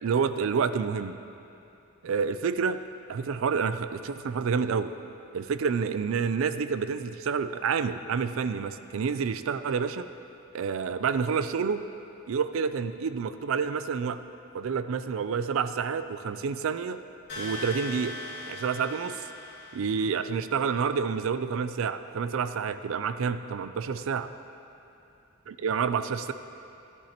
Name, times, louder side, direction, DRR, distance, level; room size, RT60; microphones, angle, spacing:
voice 1, 0.0-1.2 2.0-2.8 3.1-4.9 5.3-10.1 10.5-11.8 12.3-14.2 14.5-17.0 17.4-18.1 18.5-19.3 19.7-24.3 25.5-26.3, right 6 dB, 70° right, 12 dB, 0.4 m, -28 dB
sound 1, 17.3-20.2, left 2 dB, 50° left, 2.2 m, -39 dB
11.5 x 10.5 x 2.9 m, 2.8 s
head